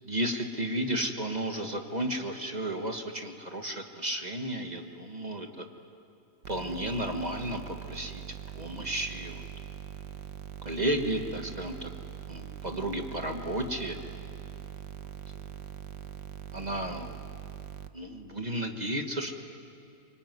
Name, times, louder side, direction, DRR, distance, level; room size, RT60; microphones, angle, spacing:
voice 1, 0.1-5.7 6.5-8.2 8.5-9.4 10.6-11.9 12.3-14.0 15.3-15.4 16.5-17.2 17.9-19.4, right 1 dB, 25° right, 4 dB, 1.5 m, -33 dB
sound 1, 6.4-17.9, right 10 dB, 90° right, 1.5 m, -42 dB
25.5 x 24.5 x 9.5 m, 2.4 s
omnidirectional pair, 1.8 m